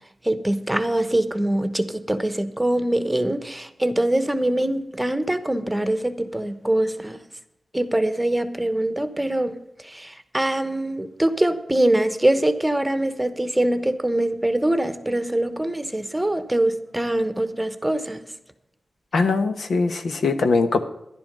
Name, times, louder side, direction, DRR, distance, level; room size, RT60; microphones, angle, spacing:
voice 1, 0.2-7.2 7.7-9.6 9.8-18.2, right 1 dB, 10° right, 11 dB, 1.1 m, -23 dB
voice 2, 19.1-20.8, left 4 dB, 80° left, 7 dB, 1.1 m, -21 dB
11.0 x 10.5 x 5.4 m, 0.84 s
cardioid pair, 65°, 0 cm